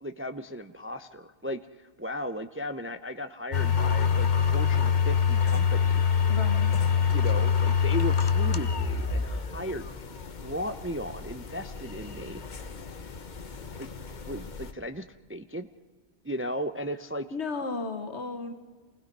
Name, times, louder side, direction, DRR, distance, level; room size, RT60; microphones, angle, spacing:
voice 1, 0.0-6.0 7.1-10.1 10.4-12.4 13.8-13.9 14.3-15.7 16.2-17.3, equal, 15° right, 9 dB, 0.4 m, -36 dB
sound 1, 3.5-14.7, left 7 dB, 45° left, 1.0 m, -26 dB
voice 2, 6.3-6.8 17.3-18.5, left 4 dB, 75° left, 8 dB, 1.8 m, -34 dB
28.5 x 20.0 x 5.4 m, 1.4 s
omnidirectional pair, 1.2 m